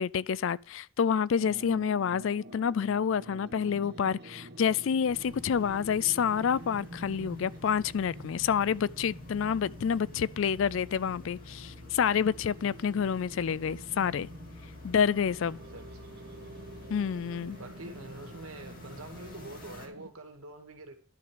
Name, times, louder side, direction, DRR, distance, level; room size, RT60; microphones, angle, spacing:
voice 1, 0.0-14.3 14.8-15.6 16.9-17.6, left 7 dB, 60° left, 0.3 m, -28 dB
sound 1, 1.4-20.1, right 1 dB, 50° right, 1.2 m, -48 dB
sound 2, 5.1-19.9, left 3 dB, 40° left, 2.4 m, -49 dB
voice 2, 15.7-16.1 17.6-20.9, right 2 dB, 75° right, 2.0 m, -45 dB
11.5 x 6.2 x 5.1 m
head